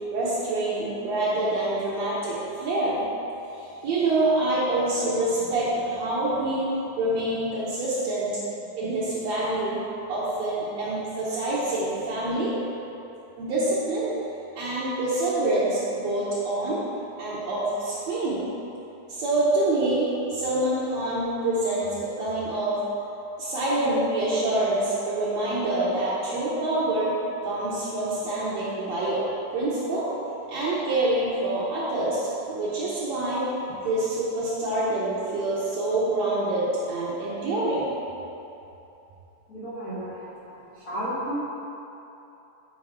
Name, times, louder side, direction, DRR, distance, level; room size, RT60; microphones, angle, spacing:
voice 1, 0.1-3.1 3.8-8.4 8.8-9.8 10.1-12.5 13.4-14.1 14.6-16.8 17.2-18.5 19.1-22.8 23.4-27.2 27.4-29.2 29.5-30.1 30.5-33.5 33.8-37.9, right 2 dB, 70° right, -9 dB, 1.9 m, -26 dB
voice 2, 39.5-41.4, right 1 dB, 75° left, -12 dB, 0.8 m, -33 dB
7.7 x 5.1 x 3.6 m, 2.9 s
omnidirectional pair, 3.6 m